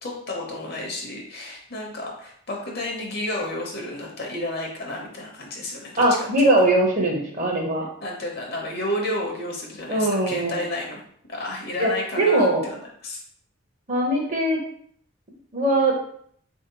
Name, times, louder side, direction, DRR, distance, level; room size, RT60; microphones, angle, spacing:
voice 1, 0.0-6.5 8.0-11.0 11.3-13.2, left 1 dB, 45° left, -1 dB, 0.7 m, -31 dB
voice 2, 6.0-7.9 9.9-10.5 11.8-12.6 13.9-14.6 15.5-16.0, right 1 dB, 35° right, -1 dB, 0.7 m, -21 dB
3.9 x 2.7 x 2.8 m, 0.63 s
head